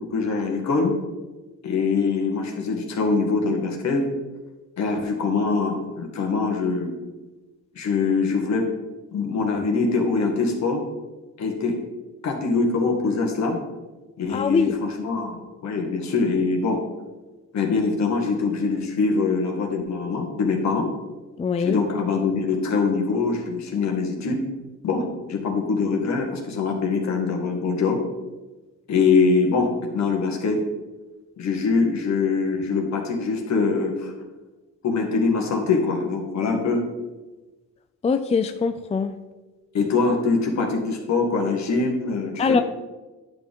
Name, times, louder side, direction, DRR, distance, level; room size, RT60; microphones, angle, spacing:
voice 1, 0.1-0.9 1.6-4.1 4.8-7.0 7.8-8.7 9.1-10.8 11.4-11.8 12.2-13.6 14.2-16.8 17.5-20.9 21.6-24.4 24.8-28.0 28.9-30.6 31.4-34.1 34.8-36.8 39.7-42.6, left 4 dB, 65° left, 2 dB, 1.9 m, -23 dB
voice 2, 14.3-14.7 21.4-21.8 38.0-39.1 42.4-42.6, left 5 dB, 20° left, 9 dB, 0.4 m, -22 dB
10.0 x 6.5 x 3.7 m, 1.2 s
cardioid pair, 90°, 30 cm